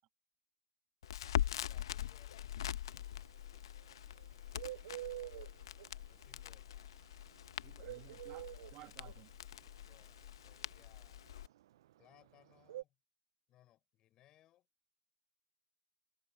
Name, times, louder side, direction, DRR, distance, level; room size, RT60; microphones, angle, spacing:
Crackle, 1.0-11.5, left 11 dB, 70° left, 0.9 m, -43 dB
voice 1, 1.4-2.6 4.2-7.0 9.8-11.3 12.0-13.0 13.5-14.7, left 13 dB, 25° left, 5.7 m, -69 dB
Bird, 2.9-12.8, right 14 dB, 60° right, 0.3 m, -47 dB
voice 2, 7.6-9.3, right 18 dB, 30° right, 1.7 m, -56 dB
hypercardioid pair, 150°, 3 cm